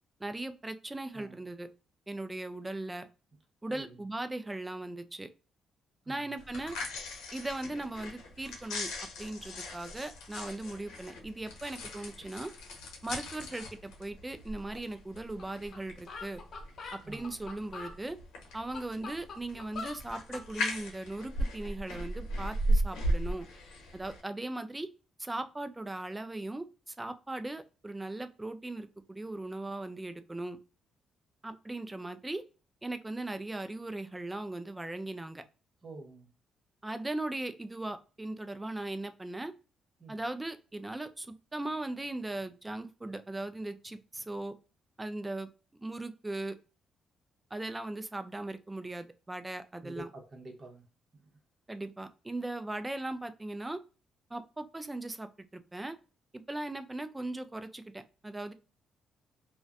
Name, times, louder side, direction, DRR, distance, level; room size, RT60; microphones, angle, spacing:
voice 1, 0.2-1.7 2.1-3.1 3.6-5.3 6.1-6.8 7.3-8.9 9.2-12.5 13.0-16.4 16.9-18.2 18.5-23.5 23.9-24.9 25.2-30.6 31.4-32.4 32.8-35.4 36.8-39.5 40.1-44.5 45.0-45.5 45.8-46.6 47.5-50.1 51.7-53.8 54.3-56.0 56.3-58.5, right 2 dB, 15° right, 10 dB, 0.3 m, -38 dB
voice 2, 3.7-4.0 6.0-6.3 17.0-17.4 35.8-36.3 40.0-40.2 49.8-50.8 51.1-51.4, right 2 dB, 35° right, 1 dB, 1.0 m, -48 dB
sound 1, 6.4-24.2, equal, 85° left, 0.7 m, -37 dB
sound 2, 15.4-15.5 15.7-15.8 16.1-18.0 18.5-20.5, left 4 dB, 55° left, 0.6 m, -43 dB
2.4 x 2.1 x 2.3 m, 0.34 s
cardioid pair, 90°, 0 cm